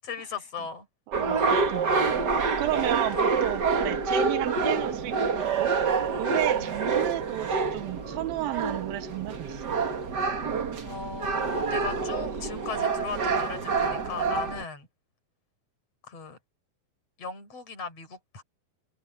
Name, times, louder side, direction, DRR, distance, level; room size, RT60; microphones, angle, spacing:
voice 1, 0.0-0.9 1.4-1.5 3.1-3.2 6.6-6.7 10.8-14.9 16.1-16.4 17.2-18.4, left 5 dB, 40° left, 8.0 m, -37 dB
sound 1, 1.1-14.6, right 5 dB, 45° right, 1.3 m, -27 dB
voice 2, 1.1-5.8 6.2-9.7, right 15 dB, 75° right, 2.6 m, -33 dB
omnidirectional pair, 4.4 m